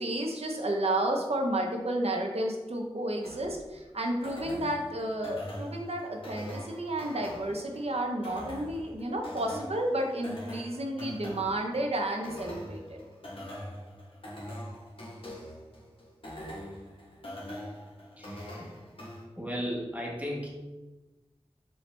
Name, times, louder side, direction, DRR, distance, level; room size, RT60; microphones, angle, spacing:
voice 1, 0.0-13.0, right 1 dB, 70° right, 1 dB, 0.8 m, -31 dB
sound 1, 3.2-19.2, equal, 55° left, 1.3 m, -43 dB
voice 2, 18.2-18.8 19.4-20.5, equal, 15° right, -3 dB, 1.3 m, -35 dB
5.4 x 2.8 x 3.4 m, 1.1 s
wide cardioid pair, 40°, 11 cm